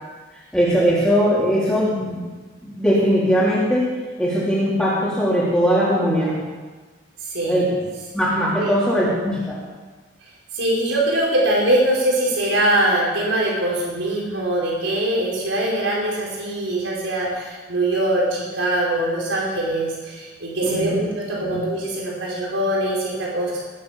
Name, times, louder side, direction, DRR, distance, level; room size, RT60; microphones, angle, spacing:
voice 1, 0.5-2.2 2.6-3.8 4.2-6.3 7.4-7.7 8.1-9.6 20.6-20.9 21.4-21.6, equal, 5° left, -8 dB, 3.5 m, -20 dB
voice 2, 7.2-7.6 8.6-8.8 10.5-23.6, right 1 dB, 85° right, -4 dB, 4.8 m, -22 dB
19.5 x 8.5 x 7.3 m, 1.3 s
head